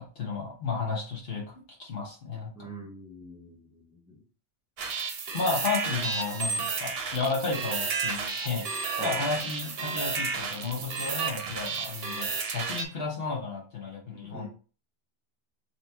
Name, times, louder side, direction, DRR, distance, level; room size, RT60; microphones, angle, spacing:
voice 1, 0.0-2.7 5.3-8.7 9.0-14.5, left 4 dB, 60° left, -2 dB, 1.4 m, -33 dB
voice 2, 2.5-4.2 9.0-9.2 14.2-14.5, equal, 5° right, -2 dB, 0.9 m, -43 dB
sound 1, 4.8-12.8, right 5 dB, 65° right, 0.9 m, -32 dB
3.5 x 3.1 x 3.5 m, 0.38 s
omnidirectional pair, 1.2 m